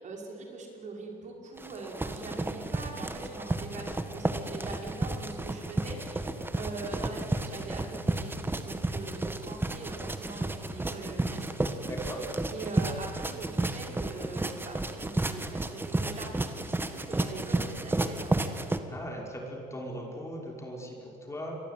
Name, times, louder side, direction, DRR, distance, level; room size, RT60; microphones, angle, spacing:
voice 1, 0.0-12.3 12.5-18.5, right 3 dB, 45° right, 0 dB, 5.7 m, -42 dB
sound 1, 1.6-18.8, right 2 dB, 10° right, 1.6 m, -32 dB
voice 2, 11.8-12.2 18.9-21.6, equal, 15° left, 0 dB, 5.5 m, -39 dB
27.5 x 22.5 x 9.4 m, 2.9 s
cardioid pair, 110°, 17 cm